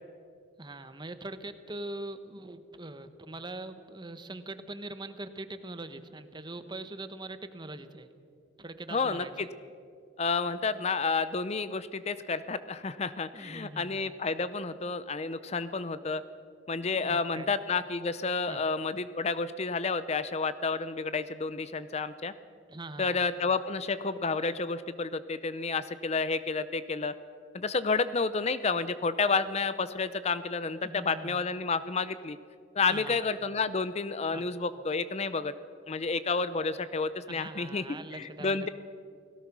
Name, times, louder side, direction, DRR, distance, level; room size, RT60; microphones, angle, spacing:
voice 1, 0.6-8.1 8.6-9.5 13.3-14.1 16.9-17.5 18.5-18.6 22.7-23.2 30.8-31.4 32.9-33.3 34.3-34.4 37.3-38.7, right 2 dB, 25° right, 10 dB, 1.0 m, -42 dB
voice 2, 8.9-9.5 10.2-16.2 16.7-22.3 23.0-27.1 27.5-32.4 32.8-35.5 35.9-37.8 38.1-38.7, left 4 dB, 35° left, 14 dB, 0.6 m, -30 dB
29.0 x 17.5 x 6.1 m, 2.4 s
head